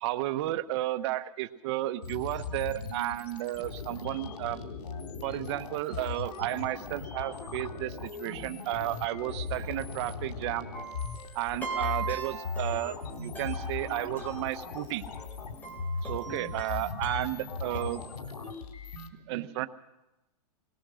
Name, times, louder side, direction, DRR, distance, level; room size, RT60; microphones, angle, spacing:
voice 1, 0.0-4.6 5.2-10.7 11.3-15.0 16.0-18.0 19.3-19.7, right 15 dB, 45° right, 11 dB, 1.1 m, -33 dB
sound 1, 2.0-19.1, left 5 dB, 90° left, 3.6 m, -38 dB
sound 2, 10.7-17.8, right 5 dB, 10° left, 4.4 m, -40 dB
20.5 x 19.5 x 6.4 m, 0.98 s
hypercardioid pair, 150°, 20 cm